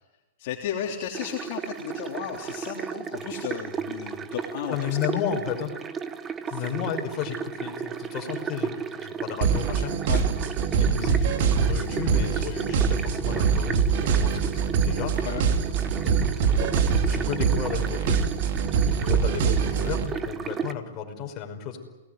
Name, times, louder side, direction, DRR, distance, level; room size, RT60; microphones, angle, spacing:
voice 1, 0.4-4.8 5.1-5.2 6.5-6.7 10.1-10.3 15.2-15.5, left 9 dB, 45° left, -1 dB, 3.4 m, -34 dB
sound 1, 1.1-20.7, right 7 dB, 15° right, 1.2 m, -35 dB
voice 2, 4.7-5.7 6.5-10.0 10.8-15.1 16.0-16.2 16.6-18.3 19.0-21.8, left 8 dB, 25° left, 2 dB, 5.5 m, -33 dB
sound 2, 9.4-20.1, right 6 dB, 50° right, 3.6 m, -24 dB
28.5 x 19.5 x 9.4 m, 1.2 s
hypercardioid pair, 150°, 0 cm